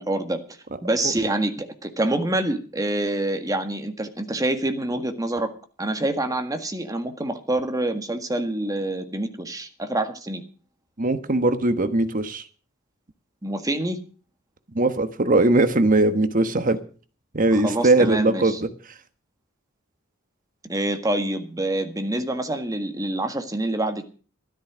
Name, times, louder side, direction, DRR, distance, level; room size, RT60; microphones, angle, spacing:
voice 1, 0.0-5.5 5.8-10.4 13.4-14.0 17.5-18.6 20.7-24.0, right 1 dB, 15° right, 1.7 m, -26 dB
voice 2, 11.0-12.4 14.7-16.8 17.3-18.7, right 2 dB, 40° right, 1.2 m, -20 dB
13.5 x 12.5 x 6.2 m
head